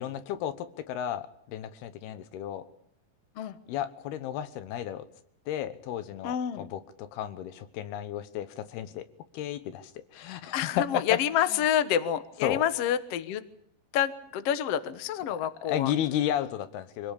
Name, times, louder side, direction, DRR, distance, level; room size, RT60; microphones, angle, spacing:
voice 1, 0.0-2.7 3.7-5.1 5.5-9.1 9.3-11.2 11.5-11.6 12.4-12.6 15.3-15.4 15.6-17.1, left 11 dB, 80° left, 12 dB, 3.1 m, -33 dB
voice 2, 6.2-6.6 10.5-13.4 13.9-15.9, left 10 dB, 65° left, 11 dB, 1.6 m, -28 dB
24.5 x 17.5 x 8.4 m, 0.71 s
omnidirectional pair, 4.5 m